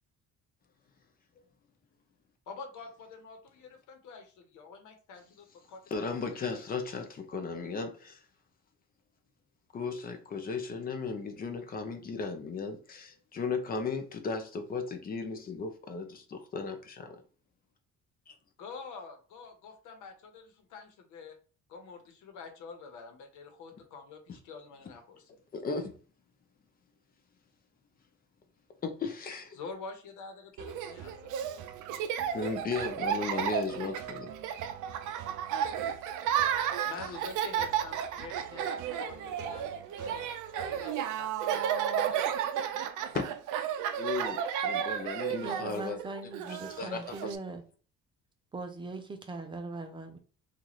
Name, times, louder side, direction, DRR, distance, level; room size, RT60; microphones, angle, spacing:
voice 1, 2.5-6.1 6.5-6.8 18.6-21.3 21.7-25.3 29.5-31.5 36.8-42.9, left 4 dB, 80° left, 1.0 m, -47 dB
voice 2, 5.9-8.2 9.7-17.2 18.3-18.4 25.5-25.9 28.8-29.6 32.3-34.3 35.6-35.7 43.1-43.2 44.0-46.0 46.5-47.3, left 4 dB, 30° left, 0.6 m, -36 dB
Laughter, 30.6-47.4, right 9 dB, 80° right, 0.5 m, -33 dB
voice 3, 45.4-47.6 48.5-50.2, right 3 dB, 15° right, 0.4 m, -40 dB
3.0 x 2.5 x 4.0 m
cardioid pair, 165°, 30 cm